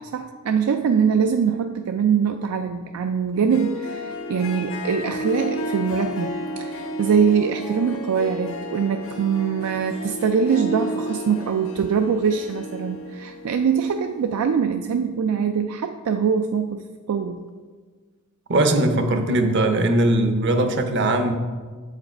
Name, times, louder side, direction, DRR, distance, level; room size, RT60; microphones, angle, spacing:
voice 1, 0.0-17.4, right 6 dB, 85° right, 6 dB, 0.4 m, -23 dB
Harp, 3.3-14.6, left 1 dB, 65° left, 0.8 m, -32 dB
voice 2, 18.5-21.3, right 1 dB, 50° right, 7 dB, 0.7 m, -20 dB
7.5 x 4.9 x 4.4 m, 1.5 s
head